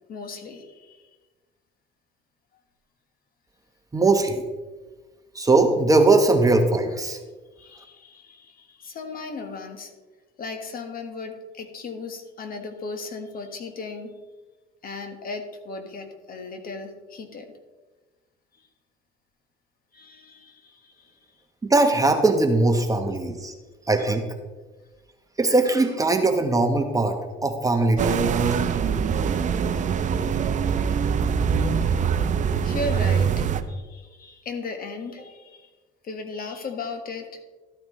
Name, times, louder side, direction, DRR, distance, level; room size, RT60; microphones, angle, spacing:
voice 1, 0.1-1.1 7.6-9.9 10.4-14.1 14.8-17.5 18.5-18.7 19.9-21.4 32.6-35.7 36.0-37.4, left 3 dB, 45° left, 6 dB, 1.5 m, -36 dB
voice 2, 3.9-4.4 5.3-7.2 21.6-23.5 23.9-24.2 25.4-28.3, right 2 dB, 15° right, 5 dB, 1.1 m, -20 dB
sound 1, 28.0-33.6, right 6 dB, 35° right, 0.7 m, -23 dB
13.0 x 8.9 x 3.2 m, 1.3 s
cardioid pair, 105°, 21 cm